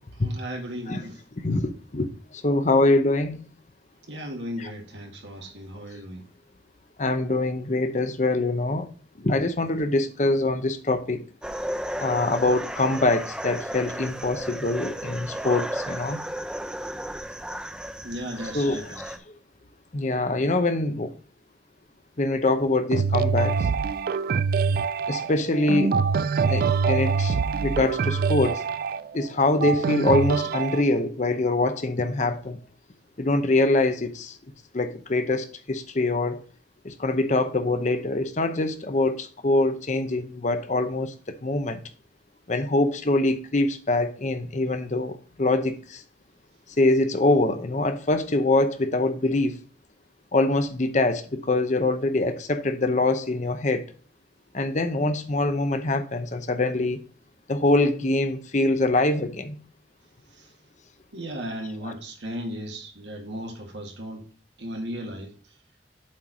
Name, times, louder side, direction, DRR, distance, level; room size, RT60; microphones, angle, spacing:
voice 1, 0.2-1.1 4.1-6.2 18.0-19.0 61.1-64.2 64.6-65.3, equal, 75° right, 2.0 m, -35 dB
voice 2, 1.4-2.1 2.3-3.4 4.6-4.7 7.0-8.9 9.2-11.2 12.0-16.2 18.5-18.9 19.9-21.1 22.2-23.7 25.1-26.0 26.5-27.4 27.6-28.6 29.1-32.6 33.2-34.4 34.7-36.4 36.8-41.8 42.5-46.0 46.8-49.6 50.3-53.8 54.5-57.0 57.5-59.6 61.8-61.9, left 2 dB, 40° left, 0.8 m, -24 dB
sound 1, 11.4-19.2, equal, 5° right, 0.6 m, -34 dB
sound 2, 22.9-30.8, right 5 dB, 50° right, 0.3 m, -25 dB
7.4 x 4.5 x 5.0 m
head